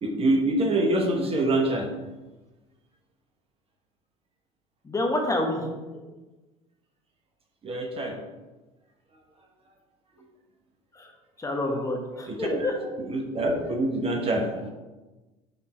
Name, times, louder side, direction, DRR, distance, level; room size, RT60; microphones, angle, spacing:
voice 1, 0.0-1.9 7.6-8.2 12.3-12.7 13.1-14.7, right 1 dB, 35° right, 2 dB, 1.1 m, -25 dB
voice 2, 4.8-5.7 10.9-11.1 11.4-12.7, left 2 dB, 20° left, 1 dB, 1.2 m, -28 dB
6.4 x 3.7 x 4.4 m, 1.2 s
hypercardioid pair, 70°, 17 cm